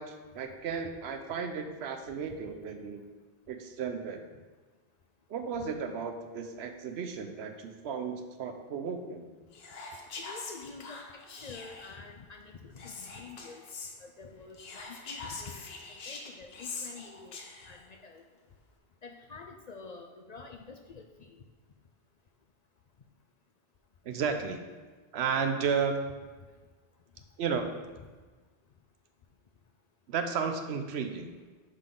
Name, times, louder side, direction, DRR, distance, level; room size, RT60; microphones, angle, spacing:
voice 1, 0.0-3.1 3.5-4.2 5.3-9.3 24.0-24.6 25.1-26.0 27.4-27.7 30.1-31.3, right 6 dB, 80° right, 7 dB, 0.9 m, -33 dB
Whispering, 9.5-12.0 12.8-13.9 14.5-17.8, left 3 dB, 70° left, 1.1 m, -43 dB
voice 2, 10.2-13.6 14.0-17.4 17.6-18.2 19.0-21.3, left 4 dB, 55° left, 3 dB, 0.5 m, -48 dB
10.0 x 3.8 x 3.7 m, 1.3 s
omnidirectional pair, 1.1 m